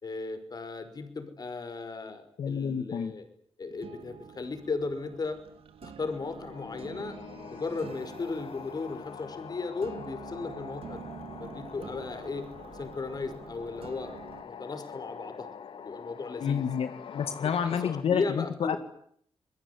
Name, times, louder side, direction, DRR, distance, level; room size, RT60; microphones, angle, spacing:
voice 1, 0.0-3.3 3.6-5.4 5.8-7.2 7.5-11.0 11.4-12.4 12.7-14.1 14.4-15.5 15.8-16.6 17.4-17.5 17.8-18.8, left 4 dB, 40° left, 9 dB, 5.5 m, -36 dB
voice 2, 2.4-3.1 16.4-18.8, left 7 dB, 85° left, 9 dB, 1.9 m, -29 dB
sound 1, 3.7-14.4, right 7 dB, 75° right, 3.0 m, -48 dB
sound 2, 6.5-18.0, left 7 dB, 65° left, 1.7 m, -45 dB
26.0 x 22.0 x 9.8 m, 0.66 s
wide cardioid pair, 125°, 10 cm